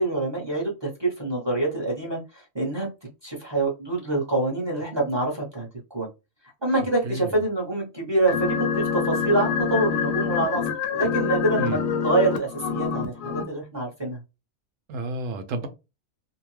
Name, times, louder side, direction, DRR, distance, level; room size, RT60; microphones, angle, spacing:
voice 1, 0.0-2.9 3.2-5.7 5.9-6.1 6.6-14.2, right 2 dB, 20° right, 0.8 m, -26 dB
voice 2, 7.0-7.4 11.5-11.8 14.9-15.7, right 2 dB, 70° right, 0.9 m, -31 dB
sound 1, 8.3-13.4, left 6 dB, 70° left, 1.0 m, -26 dB
2.7 x 2.2 x 3.1 m
omnidirectional pair, 1.5 m